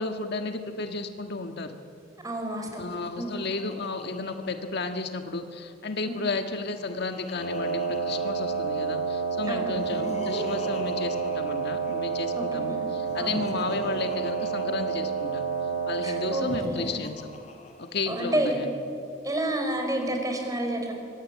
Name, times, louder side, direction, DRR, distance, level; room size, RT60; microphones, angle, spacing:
voice 1, 0.0-1.7 2.8-15.5 15.8-17.3 17.8-18.7, left 3 dB, 60° left, 6 dB, 1.6 m, -33 dB
voice 2, 2.2-2.9 3.2-3.3 6.1-6.2 9.5-9.8 12.6-12.8 13.2-13.6 16.0-17.0 18.1-18.7 19.2-20.9, right 1 dB, 20° right, 2 dB, 5.1 m, -30 dB
Laughter, 2.5-5.3 6.4-9.0 9.6-12.4 13.0-15.4 16.3-18.4, left 1 dB, 35° left, 3.2 m, -42 dB
Wind instrument woodwind instrument, 7.3-16.7, right 5 dB, 85° left, 5.7 m, -29 dB
25.0 x 23.5 x 9.6 m, 2.6 s
head